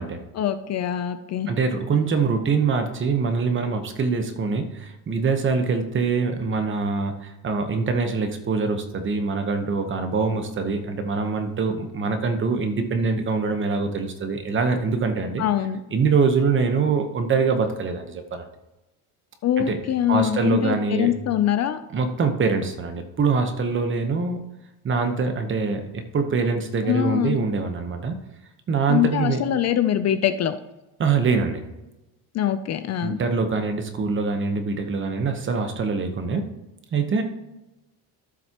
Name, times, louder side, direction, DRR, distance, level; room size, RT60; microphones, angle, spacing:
voice 1, 0.4-1.5 15.4-15.8 19.4-21.8 26.9-27.4 28.9-30.6 32.3-33.2, left 11 dB, 45° left, 11 dB, 0.5 m, -23 dB
voice 2, 1.5-15.4 15.9-18.5 19.6-19.8 20.1-21.1 21.9-24.4 24.8-28.2 28.7-29.4 31.0-31.6 33.0-36.6 36.9-37.2, right 4 dB, 30° right, 6 dB, 1.1 m, -24 dB
13.5 x 7.5 x 3.0 m, 1.0 s
cardioid pair, 155°, 38 cm